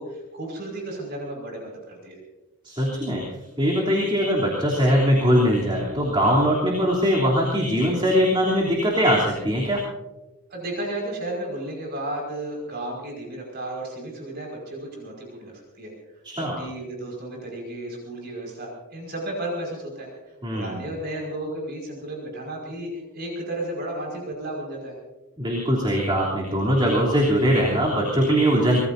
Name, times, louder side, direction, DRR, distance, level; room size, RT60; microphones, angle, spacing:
voice 1, 0.0-2.2 10.5-15.9 16.4-20.1 20.5-24.9, right 1 dB, 45° right, -1 dB, 5.4 m, -33 dB
voice 2, 2.6-3.2 3.6-9.8 16.2-16.6 20.4-20.8 25.4-28.8, equal, 20° right, -4 dB, 3.3 m, -21 dB
25.0 x 20.5 x 2.7 m, 1.1 s
head